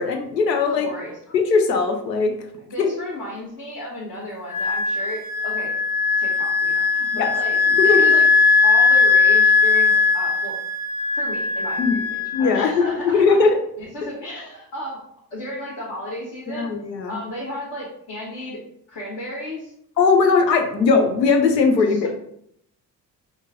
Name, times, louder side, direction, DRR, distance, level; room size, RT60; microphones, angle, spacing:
voice 1, 0.0-0.9 1.3-2.3 2.8-2.9 7.1-7.3 7.8-8.1 11.8-12.0 12.3-13.6 16.6-17.2 20.0-22.1, left 4 dB, 80° left, 6 dB, 0.7 m, -19 dB
voice 2, 0.7-1.4 2.6-5.8 6.2-7.6 7.8-8.2 8.6-10.6 11.1-12.0 12.4-13.4 13.8-15.0 15.3-16.7 17.1-18.6 18.9-19.7 21.9-22.1, left 1 dB, 45° left, -7 dB, 1.4 m, -34 dB
Wind instrument woodwind instrument, 4.5-12.8, left 4 dB, 30° left, 0.5 m, -19 dB
5.3 x 2.5 x 3.5 m, 0.70 s
figure-of-eight pair, 45°, 49 cm